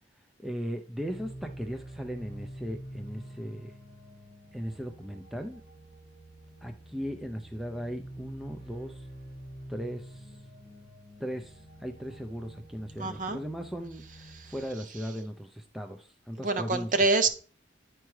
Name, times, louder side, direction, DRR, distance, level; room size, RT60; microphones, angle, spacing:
voice 1, 0.4-3.7 4.5-5.6 6.6-9.1 9.7-10.4 11.2-17.0, equal, ahead, 0.4 m, -38 dB
sound 1, 0.9-14.6, right 1 dB, 65° right, 2.5 m, -47 dB
voice 2, 13.0-13.4 16.4-17.3, right 3 dB, 45° right, 0.7 m, -25 dB
9.9 x 4.6 x 3.1 m
head